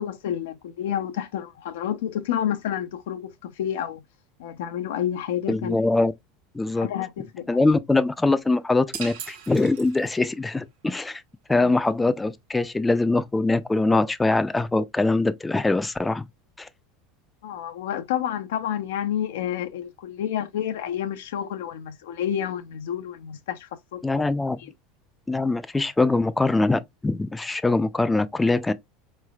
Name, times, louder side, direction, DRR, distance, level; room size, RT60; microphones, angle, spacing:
voice 1, 0.0-4.0 4.4-5.8 6.8-7.5 11.6-11.8 17.4-24.2 24.6-24.7, left 10 dB, 85° left, 0.4 m, -29 dB
voice 2, 5.5-6.1 6.5-6.9 7.5-11.2 11.5-16.3 16.6-16.7 24.0-24.6 25.3-28.7, left 2 dB, 10° left, 0.3 m, -23 dB
sound 1, 8.9-10.4, right 8 dB, 80° right, 1.0 m, -39 dB
3.9 x 3.2 x 2.2 m
supercardioid pair, 125°, 0 cm